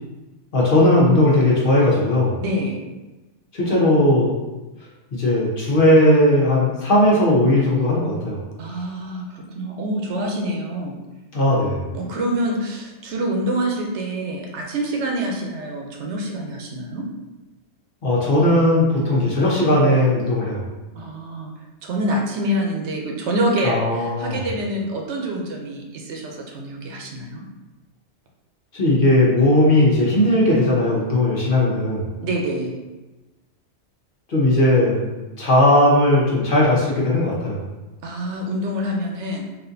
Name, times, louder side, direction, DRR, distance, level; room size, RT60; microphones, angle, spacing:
voice 1, 0.5-2.3 3.5-4.3 5.1-8.4 11.3-11.9 18.0-20.6 23.6-24.4 28.7-32.0 34.3-35.0 35.4-37.6, left 1 dB, 50° left, -5 dB, 1.0 m, -17 dB
voice 2, 2.4-2.8 8.6-10.9 11.9-17.1 21.0-21.5 21.8-27.4 32.2-32.8 38.0-39.5, right 1 dB, 70° right, 0 dB, 0.9 m, -26 dB
4.0 x 2.5 x 2.6 m, 1.1 s
omnidirectional pair, 1.2 m